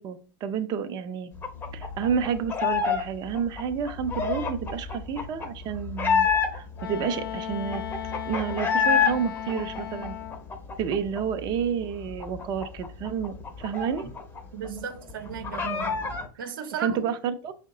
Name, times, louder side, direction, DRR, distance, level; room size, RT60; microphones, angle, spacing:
voice 1, 0.0-1.3 1.7-7.8 8.3-10.2 10.8-14.1 16.8-17.5, right 7 dB, 40° right, 0.6 m, -30 dB
sound 1, 1.4-3.0 3.3-6.8 7.2-7.3 7.5-9.1 9.5-11.2 11.5-11.6 11.9-14.4 14.7-14.8 15.1-16.3, left 6 dB, 20° left, 0.7 m, -27 dB
Wind instrument woodwind instrument, 6.8-10.5, left 10 dB, 75° left, 0.6 m, -36 dB
voice 2, 14.5-16.0 16.4-17.1, right 8 dB, 75° right, 0.9 m, -35 dB
5.2 x 2.1 x 3.7 m
hypercardioid pair, 110°, 12 cm